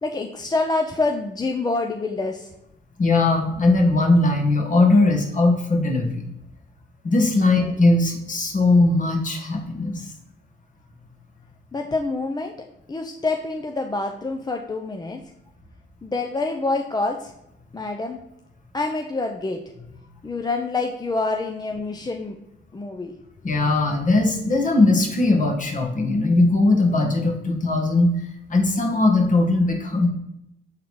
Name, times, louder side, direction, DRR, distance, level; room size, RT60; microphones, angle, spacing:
voice 1, 0.0-2.5 7.6-7.7 11.7-12.5 12.9-15.2 16.0-17.3 17.7-18.2 18.7-19.6 20.2-22.4 22.7-23.1, left 3 dB, 20° left, 3 dB, 0.6 m, -26 dB
voice 2, 3.0-6.2 7.0-10.1 23.4-28.2 28.5-30.1, left 2 dB, 40° left, 3 dB, 1.5 m, -19 dB
7.2 x 3.8 x 4.7 m, 0.84 s
cardioid pair, 90°, 20 cm